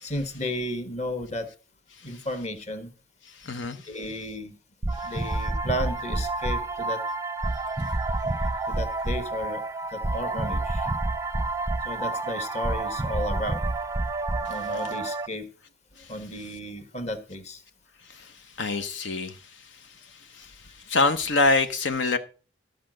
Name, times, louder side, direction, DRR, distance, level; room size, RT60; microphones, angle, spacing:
voice 1, 0.0-1.5 2.0-2.9 3.9-4.5 5.0-7.0 8.7-9.6 9.9-10.9 11.8-13.6 14.4-15.5 16.1-17.6, left 1 dB, 40° left, 1.5 m, -33 dB
voice 2, 3.4-3.8 18.1-18.3 18.6-19.4 20.4-20.5 20.9-22.2, left 3 dB, 85° left, 0.9 m, -24 dB
sound 1, 4.8-15.3, right 2 dB, 15° right, 0.5 m, -29 dB
13.5 x 5.1 x 7.7 m
head